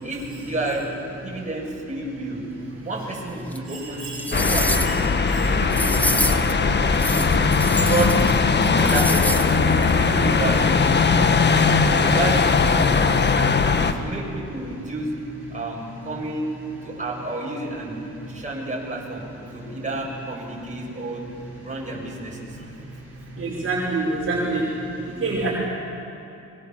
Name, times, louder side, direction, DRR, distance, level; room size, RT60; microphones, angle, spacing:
voice 1, 0.0-2.4 2.9-4.9 5.4-6.7 7.1-7.4 7.9-8.2 8.7-11.6 11.9-12.9 13.3-15.1 15.5-16.5 16.8-18.0 18.3-19.2 19.5-21.3 21.6-22.7, right 2 dB, 25° right, -2 dB, 7.1 m, -30 dB
sound 1, 3.5-3.6 4.1-5.0 5.7-6.5 6.9-8.4 8.6-9.5 9.8-9.9, equal, 5° left, 1.6 m, -27 dB
sound 2, 4.3-13.9, left 4 dB, 35° left, 1.4 m, -19 dB
voice 2, 23.4-24.6 25.2-25.5, right 3 dB, 45° right, -5 dB, 5.3 m, -25 dB
26.5 x 22.5 x 7.3 m, 2.8 s
cardioid pair, 90°, 30 cm